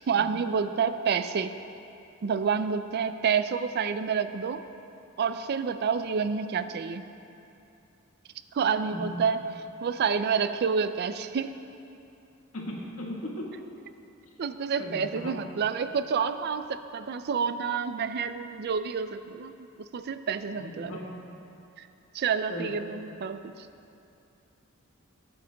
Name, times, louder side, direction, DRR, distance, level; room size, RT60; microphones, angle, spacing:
voice 1, 0.0-1.5 2.2-4.6 5.2-7.0 8.5-9.4 9.8-11.5 14.4-21.0 21.8-21.9 22.1-23.7, right 6 dB, 50° right, 11 dB, 0.3 m, -28 dB
voice 2, 8.9-9.2 12.5-13.4 14.8-15.3 20.6-21.1 22.5-22.7, equal, 75° left, -3 dB, 1.6 m, -37 dB
17.0 x 8.4 x 2.3 m, 2.7 s
head